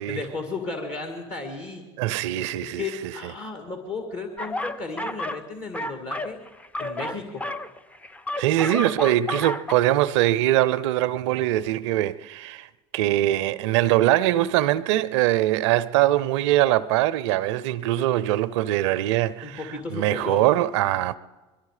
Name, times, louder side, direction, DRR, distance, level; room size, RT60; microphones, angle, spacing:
voice 1, 0.1-1.8 2.6-6.4 6.8-7.5 19.4-20.6, left 3 dB, 45° left, 2.2 m, -34 dB
voice 2, 2.0-3.3 8.4-12.7 12.9-19.6 19.9-21.2, right 14 dB, 80° right, 0.5 m, -22 dB
sound 1, 4.4-5.5 5.7-9.7, left 1 dB, 10° left, 0.5 m, -31 dB
22.0 x 13.0 x 4.9 m
hypercardioid pair, 85°, 15 cm